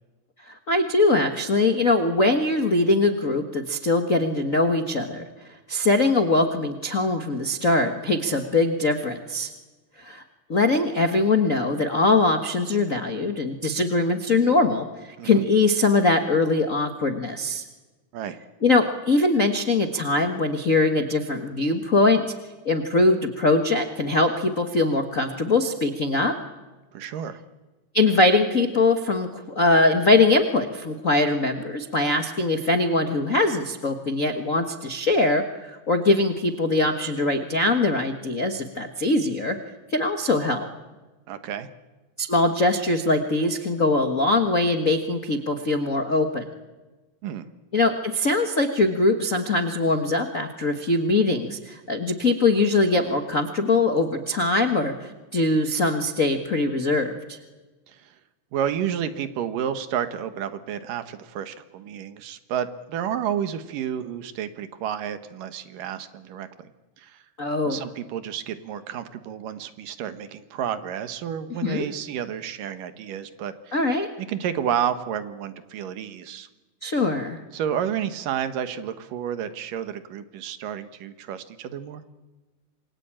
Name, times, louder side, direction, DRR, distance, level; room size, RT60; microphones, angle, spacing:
voice 1, 0.5-5.2 5.7-9.5 10.0-10.2 10.5-17.6 18.6-22.2 22.6-26.3 27.9-39.6 39.9-40.7 42.2-46.4 47.7-57.4 67.4-67.8 71.6-71.9 73.7-74.1 76.8-77.4, left 2 dB, 50° left, 5 dB, 0.9 m, -22 dB
voice 2, 26.9-27.4 41.3-41.7 47.2-47.5 57.9-58.1 58.5-66.7 67.0-67.2 67.6-73.8 74.3-76.5 77.5-82.0, right 9 dB, 80° right, 10 dB, 2.9 m, -31 dB
27.0 x 22.5 x 8.9 m, 1.2 s
omnidirectional pair, 3.9 m